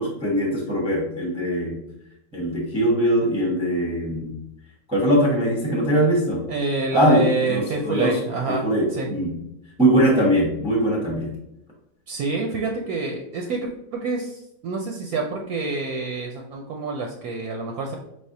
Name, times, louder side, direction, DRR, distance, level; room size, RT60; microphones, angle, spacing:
voice 1, 0.0-1.8 2.3-4.3 4.9-6.4 6.9-8.2 8.6-9.3 9.8-11.3, right 1 dB, 5° right, -3 dB, 0.7 m, -21 dB
voice 2, 6.5-9.1 12.1-18.0, right 3 dB, 70° right, 1 dB, 1.0 m, -27 dB
5.0 x 3.4 x 2.7 m, 0.85 s
omnidirectional pair, 1.8 m